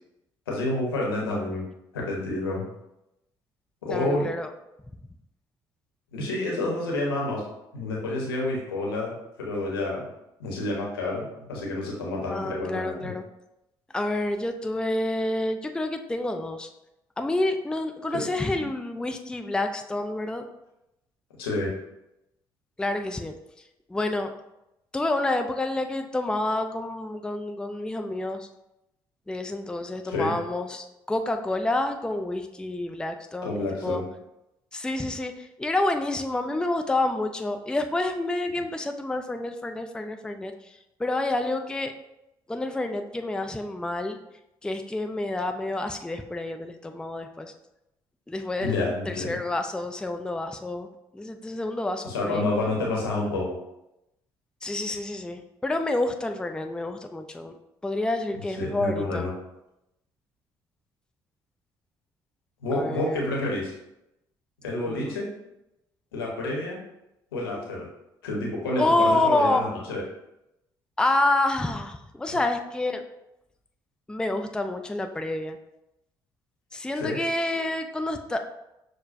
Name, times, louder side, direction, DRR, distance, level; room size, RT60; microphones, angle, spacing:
voice 1, 0.5-1.6 1.9-2.6 3.8-4.2 6.1-7.4 7.7-10.1 10.4-11.2 11.5-13.1 18.1-18.2 21.4-21.7 30.1-30.4 33.4-34.0 48.6-49.4 52.0-53.6 58.6-59.3 62.6-63.7 64.6-65.3 66.1-66.8 67.3-67.9 68.2-70.0 77.0-77.2, left 2 dB, 85° left, -2 dB, 0.9 m, -29 dB
voice 2, 3.9-4.5 12.3-13.2 13.9-16.7 17.2-20.4 22.8-23.3 23.9-24.3 24.9-28.5 29.3-34.0 34.7-41.9 42.5-44.2 44.6-47.5 48.3-50.9 51.1-52.5 54.6-57.6 57.8-59.3 62.7-63.2 64.8-65.1 68.8-69.8 71.0-73.0 74.1-75.6 76.7-78.4, left 2 dB, 5° left, 6 dB, 0.4 m, -28 dB
6.3 x 2.1 x 2.5 m, 0.88 s
hypercardioid pair, 50°, 12 cm